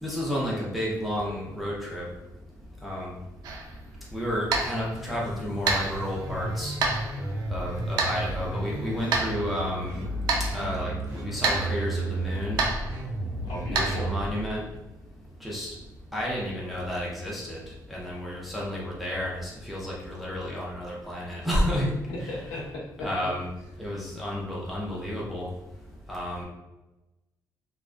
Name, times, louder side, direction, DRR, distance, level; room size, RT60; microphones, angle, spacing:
voice 1, 0.0-2.0 2.8-3.1 4.1-6.8 7.5-10.0 10.5-12.6 13.7-14.6 15.4-15.7 16.1-17.6 17.9-21.9 23.0-23.5 23.8-25.5 26.1-26.4, equal, ahead, -6 dB, 0.6 m, -31 dB
sound 1, 3.4-14.1, right 3 dB, 90° right, 0.4 m, -32 dB
sound 2, 4.9-14.4, right 1 dB, 50° right, 0.9 m, -33 dB
voice 2, 13.4-14.1 22.1-23.3, left 1 dB, 85° left, -3 dB, 0.6 m, -35 dB
2.3 x 2.2 x 2.4 m, 1.0 s
cardioid pair, 135°, 7 cm